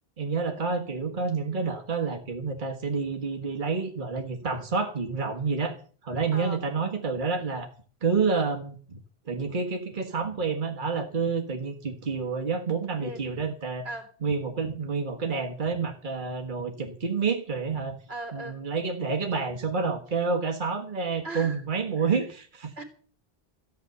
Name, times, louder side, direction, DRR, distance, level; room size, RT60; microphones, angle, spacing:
voice 1, 0.2-5.7 6.0-7.7 8.0-9.0 9.3-13.9 14.2-18.0 18.3-22.7, right 5 dB, 55° right, 4 dB, 1.7 m, -29 dB
voice 2, 18.1-18.6 21.2-21.6 22.0-22.2 22.8-22.9, right 1 dB, 85° right, 4 dB, 3.0 m, -38 dB
14.5 x 9.1 x 6.8 m, 0.42 s
omnidirectional pair, 1.0 m